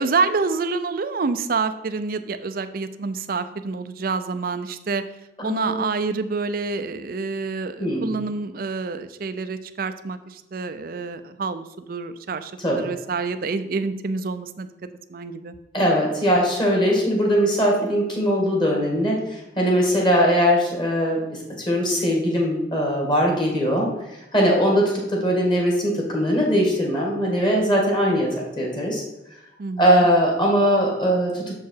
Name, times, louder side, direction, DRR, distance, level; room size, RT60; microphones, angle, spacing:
voice 1, 0.0-5.0 5.4-14.7 15.1-15.5 29.6-30.1, right 4 dB, 55° right, 11 dB, 0.5 m, -27 dB
voice 2, 5.4-5.8 7.8-8.1 12.6-12.8 15.7-21.2 21.7-23.9 24.3-29.0 29.8-31.6, equal, 25° left, -1 dB, 1.9 m, -20 dB
6.7 x 4.7 x 4.6 m, 0.96 s
head